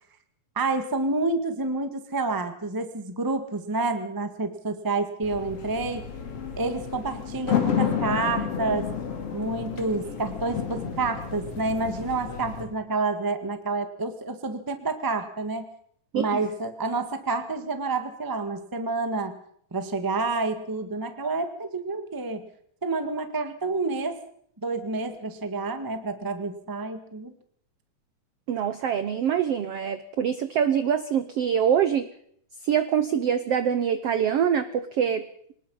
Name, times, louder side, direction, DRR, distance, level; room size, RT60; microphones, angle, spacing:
voice 1, 0.5-6.0 6.6-8.9 9.3-15.7 16.1-19.4 19.7-22.4 22.8-24.2 24.6-27.3, right 3 dB, 35° right, 8 dB, 0.3 m, -29 dB
sound 1, 5.2-12.6, left 7 dB, 45° left, 3.3 m, -31 dB
voice 2, 28.5-32.1 32.6-35.3, right 8 dB, 80° right, 12 dB, 1.3 m, -24 dB
25.5 x 19.5 x 5.6 m, 0.65 s
omnidirectional pair, 4.2 m